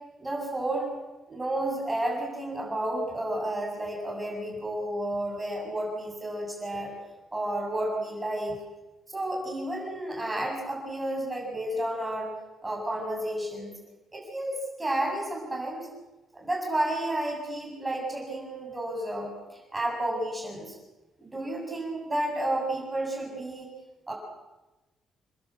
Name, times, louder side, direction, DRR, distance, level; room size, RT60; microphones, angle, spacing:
voice 1, 0.2-0.9 1.3-6.9 7.3-8.6 9.1-12.3 12.6-13.7 14.1-15.9 16.3-20.7 21.2-23.7 24.1-24.2, right 1 dB, 10° right, -1 dB, 7.2 m, -31 dB
28.5 x 22.0 x 7.7 m, 1.1 s
cardioid pair, 170°, 0 cm